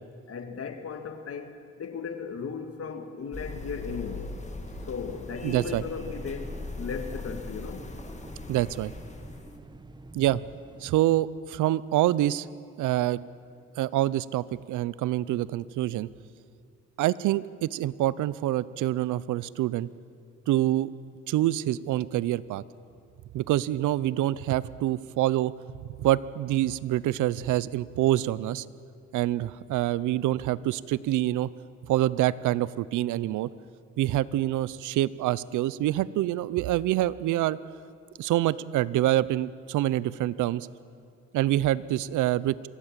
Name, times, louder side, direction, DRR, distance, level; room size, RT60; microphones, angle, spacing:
voice 1, 0.3-4.4 4.9-7.9, left 5 dB, 50° left, 8 dB, 1.9 m, -37 dB
sound 1, 3.3-9.6, left 3 dB, 25° left, 2.2 m, -39 dB
sound 2, 3.5-11.0, right 2 dB, 15° right, 0.9 m, -47 dB
voice 2, 5.4-5.8 8.5-8.9 10.1-10.4 10.8-12.5 12.8-13.2 13.8-16.1 17.0-19.9 20.5-20.9 21.3-22.6 23.3-25.5 26.0-28.6 29.1-31.5 31.9-33.5 34.0-37.6 38.2-40.7 41.3-42.5, right 14 dB, 80° right, 19 dB, 0.7 m, -26 dB
24.5 x 16.5 x 7.5 m, 2.4 s
cardioid pair, 90°, 30 cm